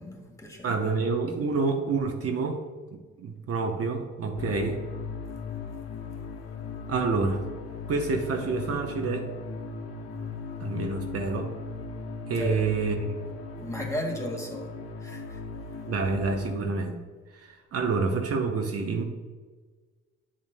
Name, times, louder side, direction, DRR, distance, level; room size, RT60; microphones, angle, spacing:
voice 1, 0.0-0.7 12.3-12.7 13.6-14.7 15.0-15.4, equal, 10° left, 0 dB, 1.8 m, -35 dB
voice 2, 0.6-2.6 2.9-4.8 6.9-7.4 7.9-9.3 10.6-11.5 12.3-13.0 15.9-17.0 17.3-19.0, right 4 dB, 50° right, 3 dB, 0.8 m, -28 dB
sound 1, 4.4-16.6, left 4 dB, 55° left, 0.9 m, -38 dB
8.5 x 7.4 x 2.2 m, 1.4 s
cardioid pair, 90°, 30 cm